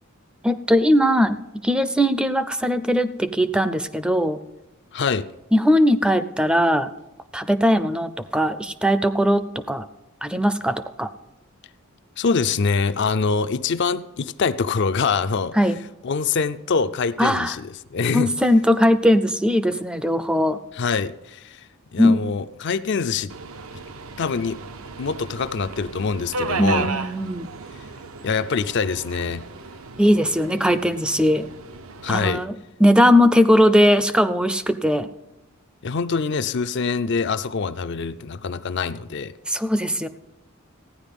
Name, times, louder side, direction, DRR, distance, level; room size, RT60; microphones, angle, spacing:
voice 1, 0.4-1.4 1.6-4.4 5.5-6.9 7.3-9.9 10.2-11.1 15.5-15.8 17.2-17.6 18.1-20.6 22.0-22.3 26.6-27.5 30.0-31.5 32.1-35.1 39.5-40.1, equal, 5° right, 0.4 m, -19 dB
voice 2, 4.9-5.3 12.2-15.6 16.0-18.3 20.8-21.6 21.9-23.3 24.2-24.6 25.0-26.9 28.2-29.4 32.0-32.4 35.8-39.3, left 5 dB, 55° left, 0.4 m, -24 dB
Subway metro underground, 23.3-32.5, right 3 dB, 80° right, 0.8 m, -34 dB
15.0 x 9.8 x 5.2 m
head